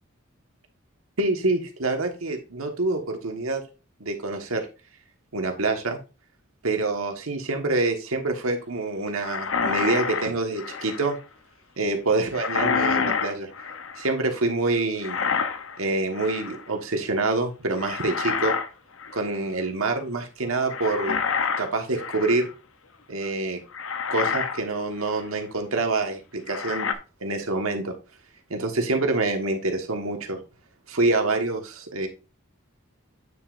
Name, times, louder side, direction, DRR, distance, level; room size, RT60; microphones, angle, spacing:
voice 1, 1.2-3.6 4.0-4.7 5.3-6.0 6.6-11.2 11.8-13.5 14.0-15.2 15.8-18.5 19.1-21.2 21.6-22.5 23.1-23.6 24.1-26.9 27.2-27.9 28.5-30.4 30.9-32.1, right 2 dB, 90° right, 4 dB, 1.4 m, -26 dB
sound 1, 9.2-11.2 12.3-14.1 15.0-15.8 16.1-16.6 17.8-18.7 19.0-19.3 20.7-22.5 23.2-23.3 23.7-24.6 25.1-25.2 26.5-26.9, left 6 dB, 70° left, 0.7 m, -28 dB
9.2 x 6.1 x 2.5 m, 0.32 s
head